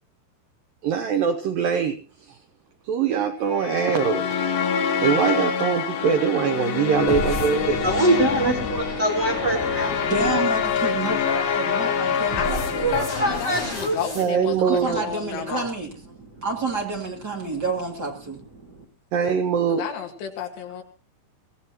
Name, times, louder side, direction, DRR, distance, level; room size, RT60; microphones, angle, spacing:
voice 1, 0.8-2.4 2.8-4.4 5.0-7.9 14.2-15.0 19.1-19.8, right 7 dB, 90° right, 7 dB, 1.9 m, -23 dB
sound 1, 3.5-13.9, left 7 dB, 90° left, 4.0 m, -26 dB
sound 2, 7.1-14.3, equal, 5° left, 5.1 m, -34 dB
voice 2, 7.8-10.1 12.8-14.0 16.3-16.4 18.6-18.7, right 2 dB, 70° right, 0 dB, 0.9 m, -24 dB
voice 3, 8.7-9.0 9.9-13.7 14.6-15.9 16.4-18.4, right 3 dB, 30° right, 0 dB, 2.4 m, -29 dB
voice 4, 12.4-15.7 19.7-20.8, left 8 dB, 70° left, 4 dB, 3.8 m, -32 dB
23.0 x 16.5 x 3.0 m, 0.34 s
omnidirectional pair, 5.3 m